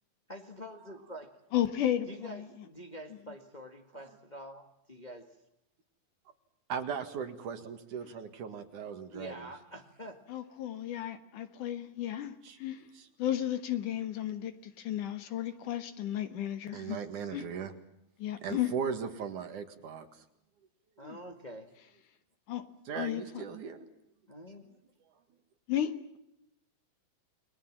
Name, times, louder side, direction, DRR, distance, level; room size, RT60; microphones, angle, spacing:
voice 1, 0.3-1.3 2.1-5.3 9.1-10.2 21.0-21.7 24.3-24.7, equal, 45° left, 0.5 m, -46 dB
voice 2, 1.5-2.7 10.3-12.9 13.2-17.0 17.3-17.4 18.2-18.7 21.0-21.2 22.5-22.7 22.9-23.4 25.7-26.2, left 11 dB, 65° left, 2.7 m, -34 dB
voice 3, 6.7-9.5 12.4-12.6 13.0-13.1 16.7-17.7 18.4-20.1 22.9-23.8, right 6 dB, 60° right, 3.2 m, -38 dB
30.0 x 22.0 x 7.4 m
omnidirectional pair, 4.2 m